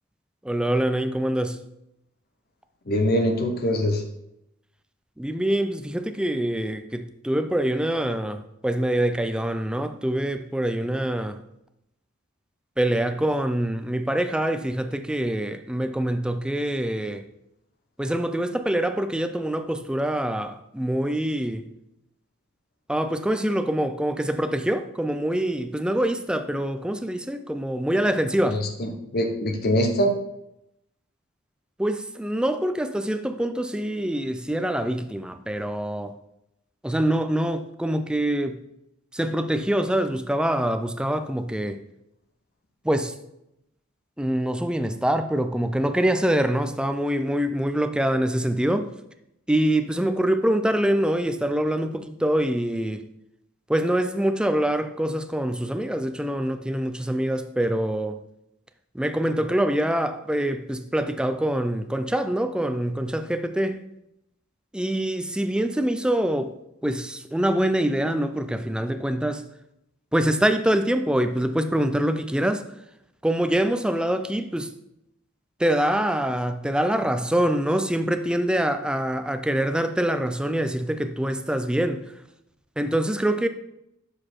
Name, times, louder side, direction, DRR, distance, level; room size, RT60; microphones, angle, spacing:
voice 1, 0.4-1.6 5.2-11.4 12.8-17.3 18.0-21.7 22.9-28.6 31.8-36.1 36.8-38.6 39.1-41.8 42.8-43.1 44.2-48.9 49.5-53.0 53.7-58.2 58.9-63.8 64.7-66.5 66.8-69.4 70.1-72.6 73.2-74.7 75.6-82.0 82.8-83.5, right 1 dB, 5° right, 0.4 m, -25 dB
voice 2, 2.9-4.0 28.4-30.1, equal, 50° left, 0.8 m, -23 dB
6.5 x 4.9 x 4.4 m
head